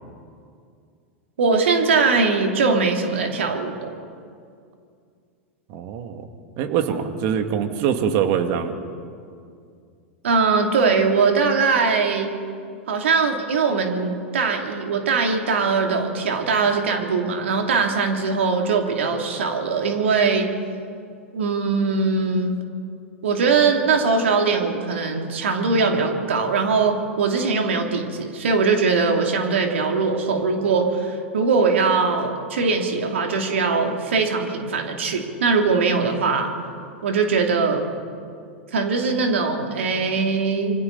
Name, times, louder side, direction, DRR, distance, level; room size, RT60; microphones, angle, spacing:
voice 1, 1.4-3.9 10.2-12.3 12.9-20.5 21.3-22.6 23.2-36.5 37.0-37.9 38.7-40.8, right 4 dB, 75° right, 3 dB, 2.8 m, -21 dB
voice 2, 5.7-6.3 6.6-8.7, right 8 dB, 50° right, 7 dB, 2.2 m, -23 dB
27.0 x 24.5 x 4.1 m, 2.3 s
hypercardioid pair, 95°, 7 cm